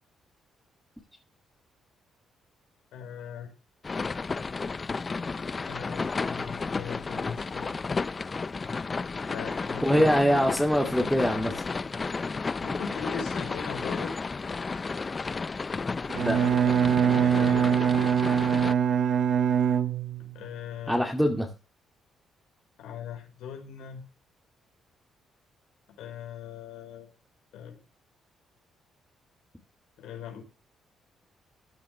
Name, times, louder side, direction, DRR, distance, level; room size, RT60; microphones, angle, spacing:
voice 1, 2.9-3.5 5.6-7.7 9.3-10.3 12.6-14.1 16.3-16.7 17.1-17.8 20.3-21.0 22.8-24.0 26.0-27.1 27.5-27.8 30.0-30.4, left 7 dB, 90° left, 3 dB, 4.9 m, -40 dB
sound 1, 3.8-18.7, left 4 dB, 30° left, 0.6 m, -32 dB
voice 2, 9.8-11.5 16.2-16.4 20.9-21.5, equal, ahead, 1 dB, 2.2 m, -23 dB
Bowed string instrument, 16.1-20.4, right 8 dB, 65° right, 1.2 m, -23 dB
15.0 x 10.0 x 3.4 m, 0.32 s
cardioid pair, 90°, 0 cm